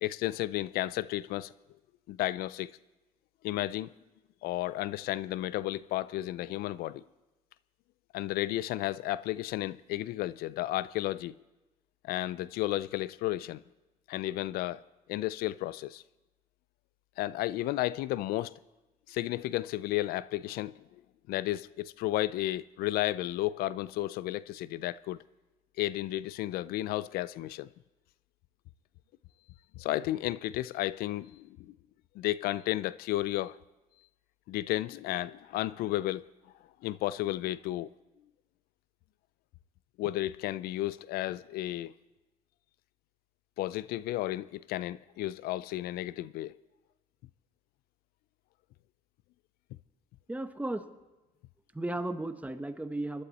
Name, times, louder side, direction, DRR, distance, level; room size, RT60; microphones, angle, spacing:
voice 1, 0.0-1.5 2.1-2.7 3.4-3.9 4.4-7.0 8.1-11.4 12.0-13.6 14.1-14.8 15.1-16.0 17.2-18.5 19.1-20.7 21.3-25.2 25.8-27.7 29.8-31.7 32.2-33.6 34.5-36.3 36.8-37.9 40.0-41.9 43.6-46.6, left 15 dB, 85° left, 0.4 m, -33 dB
voice 2, 50.3-50.9 51.7-53.2, right 1 dB, 10° right, 1.0 m, -35 dB
23.0 x 11.5 x 4.1 m
cardioid pair, 85°, 15 cm